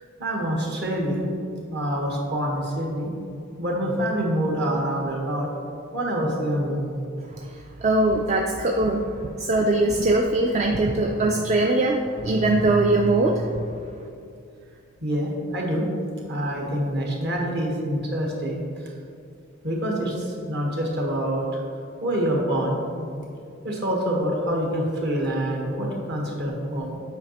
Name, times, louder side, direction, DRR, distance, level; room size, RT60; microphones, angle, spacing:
voice 1, 0.2-1.3 1.7-5.5 5.9-7.0 15.0-15.9 16.3-18.6 19.6-21.4 22.0-23.3 23.6-27.0, equal, 55° right, -1 dB, 1.2 m, -26 dB
voice 2, 7.8-9.1 9.4-13.6, right 2 dB, 35° right, 2 dB, 0.3 m, -21 dB
8.0 x 4.9 x 2.9 m, 2.5 s
head